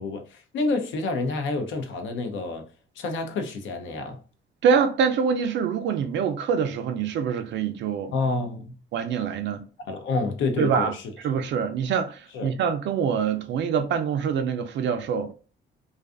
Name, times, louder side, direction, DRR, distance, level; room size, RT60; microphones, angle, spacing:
voice 1, 0.0-2.7 3.0-4.2 8.1-8.7 9.9-11.1 12.3-12.5, left 3 dB, 75° left, 0.6 m, -28 dB
voice 2, 4.6-8.1 8.9-9.6 10.6-10.9 11.2-15.3, right 6 dB, 65° right, 0.4 m, -25 dB
2.5 x 2.4 x 2.4 m
cardioid pair, 90°, 20 cm